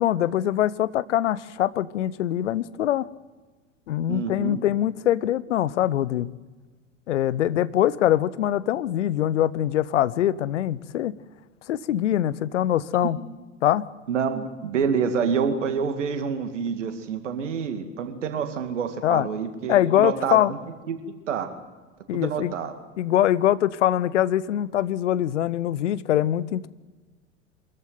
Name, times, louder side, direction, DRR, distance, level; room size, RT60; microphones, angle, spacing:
voice 1, 0.0-3.1 3.9-6.3 7.1-11.2 11.7-13.2 13.6-13.9 19.0-19.3 19.7-20.5 22.1-22.5 23.0-26.7, left 12 dB, 70° left, 19 dB, 0.8 m, -23 dB
voice 2, 4.1-4.6 14.1-20.6 20.9-21.0 21.3-21.5 22.1-22.7, right 6 dB, 70° right, 8 dB, 2.2 m, -27 dB
23.5 x 14.5 x 9.4 m, 1.3 s
figure-of-eight pair, 80°, 37 cm